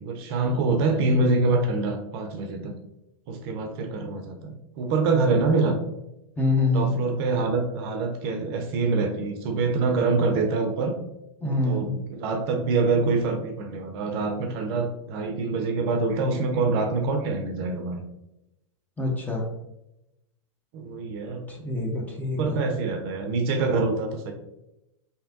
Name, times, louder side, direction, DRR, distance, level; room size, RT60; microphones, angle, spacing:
voice 1, 0.0-2.7 3.3-5.8 6.7-11.0 11.4-18.0 20.7-21.8 22.2-24.3, right 3 dB, 50° right, 5 dB, 0.6 m, -25 dB
voice 2, 6.4-7.0 11.4-11.9 19.0-19.5 21.5-22.6, left 2 dB, 10° left, -1 dB, 0.8 m, -25 dB
3.3 x 2.7 x 2.5 m, 0.88 s
hypercardioid pair, 100°, 17 cm